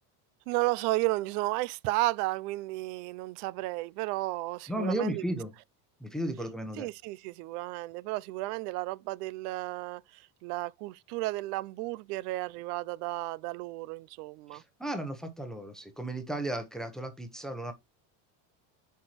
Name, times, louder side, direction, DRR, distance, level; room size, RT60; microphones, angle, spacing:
voice 1, 0.5-5.2 6.8-14.6, right 20 dB, 85° right, 0.5 m, -33 dB
voice 2, 4.7-5.5 6.0-6.9 14.5-17.7, right 1 dB, ahead, 0.8 m, -34 dB
9.3 x 4.5 x 3.1 m
cardioid pair, 140°, 45 cm